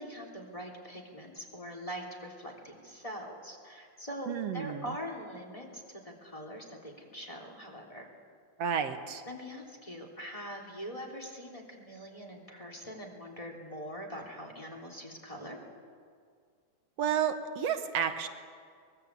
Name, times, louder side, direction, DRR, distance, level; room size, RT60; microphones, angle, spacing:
voice 1, 0.0-8.1 9.2-15.6, equal, 10° left, 0 dB, 3.3 m, -43 dB
voice 2, 4.3-4.8 8.6-9.2 17.0-18.3, right 8 dB, 65° right, 8 dB, 2.1 m, -31 dB
23.5 x 21.5 x 8.5 m, 2.1 s
omnidirectional pair, 3.3 m